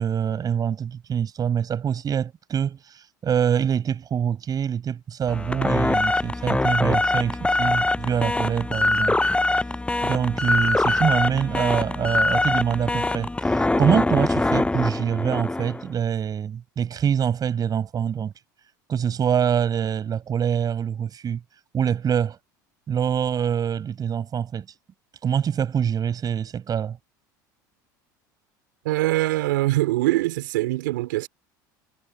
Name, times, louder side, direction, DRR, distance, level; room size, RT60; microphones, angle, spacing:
voice 1, 0.0-9.2 10.0-18.3 18.9-21.4 21.7-22.4 22.9-24.7 25.2-27.0, right 8 dB, 35° right, 8.0 m, -25 dB
sound 1, 5.3-15.9, left 2 dB, 10° left, 8.0 m, -23 dB
voice 2, 28.8-31.3, right 18 dB, 80° right, 3.8 m, -23 dB
hypercardioid pair, 80°, 10 cm